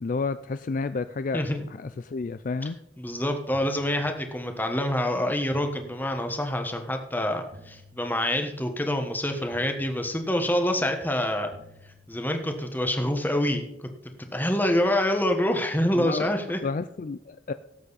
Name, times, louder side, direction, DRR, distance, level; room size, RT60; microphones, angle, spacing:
voice 1, 0.0-2.8 15.9-17.5, left 4 dB, 45° left, 12 dB, 0.4 m, -31 dB
voice 2, 3.0-11.5 12.1-13.9 14.2-16.6, left 1 dB, 10° left, 5 dB, 1.3 m, -26 dB
sound 1, 7.5-8.7 9.5-10.7 11.5-12.7, left 1 dB, 50° right, 1.3 m, -52 dB
17.5 x 7.9 x 4.1 m, 0.85 s
head